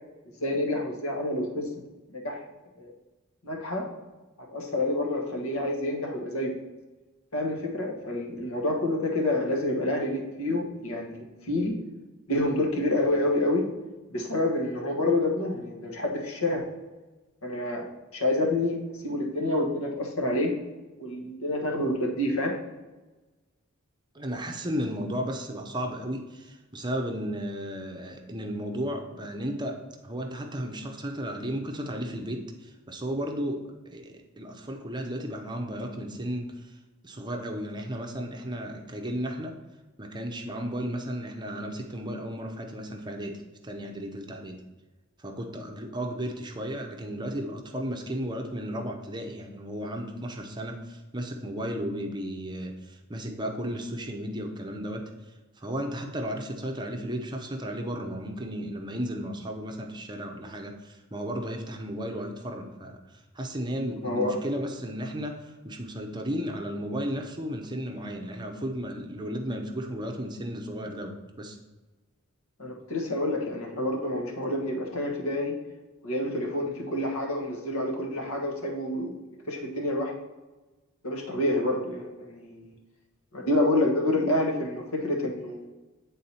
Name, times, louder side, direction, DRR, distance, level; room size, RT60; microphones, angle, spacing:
voice 1, 0.4-1.7 2.1-2.5 2.8-2.9 3.4-3.9 4.5-6.5 7.3-11.7 12.3-13.6 14.1-16.6 17.4-17.8 18.1-18.8 19.0-20.5 21.0-22.5 64.0-64.3 72.6-75.5 76.0-79.2 79.5-80.1 81.0-82.7 83.3-85.7, left 1 dB, 85° left, 0 dB, 1.3 m, -28 dB
voice 2, 24.1-36.8 37.0-39.6 40.0-44.6 45.2-55.1 55.6-71.6, equal, 20° right, 3 dB, 0.7 m, -34 dB
8.3 x 3.8 x 4.2 m, 1.2 s
head